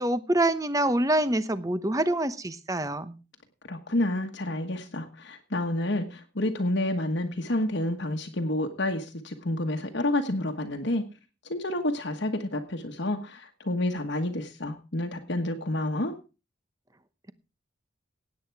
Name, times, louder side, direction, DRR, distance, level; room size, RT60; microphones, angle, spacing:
voice 1, 0.0-3.2, right 1 dB, 15° right, 13 dB, 0.9 m, -26 dB
voice 2, 3.6-11.0 11.4-16.1, left 1 dB, 55° left, 4 dB, 1.4 m, -29 dB
17.0 x 8.9 x 4.7 m, 0.32 s
head